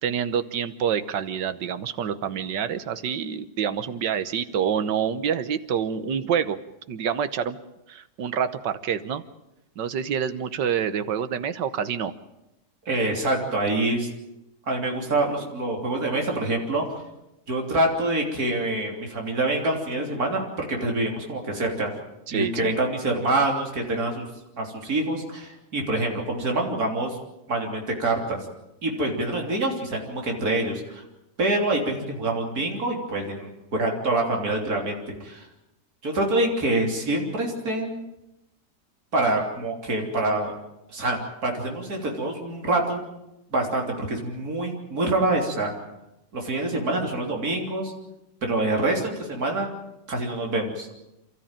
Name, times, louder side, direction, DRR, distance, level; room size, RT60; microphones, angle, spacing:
voice 1, 0.0-6.6 6.9-7.6 7.9-9.2 9.8-12.1 22.3-22.8, right 8 dB, 85° right, 12 dB, 1.7 m, -27 dB
voice 2, 12.9-14.1 14.7-16.9 17.5-21.9 22.3-24.3 24.6-27.2 27.5-28.4 28.8-31.0 31.4-35.5 36.0-38.0 39.1-40.5 40.9-43.1 43.5-45.7 46.3-47.9 48.4-49.7 50.1-50.9, right 2 dB, 55° right, 1 dB, 3.8 m, -26 dB
28.5 x 13.5 x 8.9 m, 0.91 s
omnidirectional pair, 1.9 m